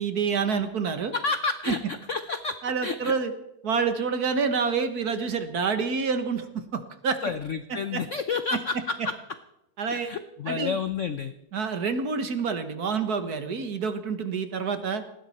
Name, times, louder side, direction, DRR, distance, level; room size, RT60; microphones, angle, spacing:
voice 1, 0.0-1.1 1.7-1.8 2.6-3.3 3.6-7.2 7.9-8.0 9.8-10.1 10.5-10.8 11.5-15.0, right 5 dB, 50° right, 9 dB, 1.6 m, -27 dB
voice 2, 1.1-3.1 7.2-9.1 9.9-11.3, left 4 dB, 75° left, 11 dB, 0.7 m, -30 dB
19.5 x 15.5 x 4.3 m, 0.83 s
omnidirectional pair, 2.3 m